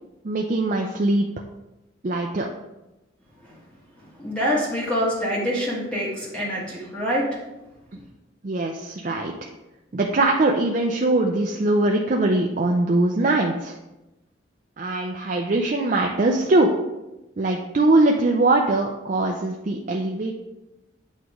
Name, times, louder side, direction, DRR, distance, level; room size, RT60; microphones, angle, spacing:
voice 1, 0.2-1.3 2.0-2.5 8.4-9.5 9.9-13.8 14.8-16.7 17.4-20.4, right 2 dB, 40° right, 1 dB, 0.4 m, -21 dB
voice 2, 4.0-7.2, equal, 5° left, -7 dB, 1.4 m, -26 dB
8.2 x 3.0 x 4.8 m, 0.97 s
head